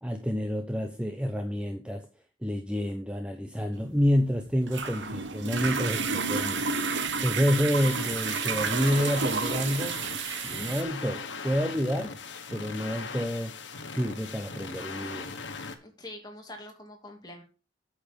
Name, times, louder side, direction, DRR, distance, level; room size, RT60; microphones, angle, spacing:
voice 1, 0.0-2.1 2.4-6.7 7.2-10.0 10.4-12.1 12.5-13.6 13.9-15.4, equal, 5° right, 4 dB, 0.8 m, -28 dB
sound 1, 3.8-10.8, right 5 dB, 85° right, 1.4 m, -31 dB
sound 2, 7.7-15.7, left 4 dB, 90° left, 1.5 m, -40 dB
voice 2, 15.8-17.4, left 1 dB, 20° left, 2 dB, 2.6 m, -44 dB
8.7 x 7.3 x 5.3 m, 0.32 s
head